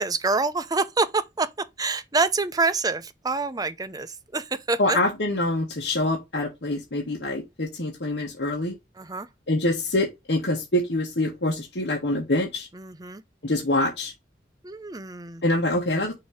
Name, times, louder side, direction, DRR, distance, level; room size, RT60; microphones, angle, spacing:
voice 1, 0.0-1.5 1.8-5.0 9.0-9.3 12.7-13.2 14.6-15.4, right 3 dB, 20° right, 0.6 m, -26 dB
voice 2, 4.8-8.7 9.5-12.7 13.4-14.1 15.4-16.1, left 1 dB, 75° left, 1.4 m, -25 dB
6.4 x 2.9 x 5.0 m
head